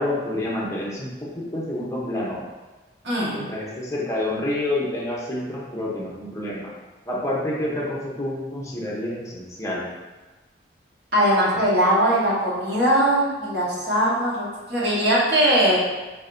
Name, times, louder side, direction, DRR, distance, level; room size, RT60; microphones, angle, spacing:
voice 1, 0.0-2.4 3.3-6.7 7.1-9.9, left 1 dB, 15° left, -5 dB, 0.8 m, -28 dB
voice 2, 3.0-3.4 11.1-15.8, right 1 dB, 70° right, -6 dB, 1.4 m, -20 dB
4.7 x 4.2 x 2.6 m, 1.2 s
head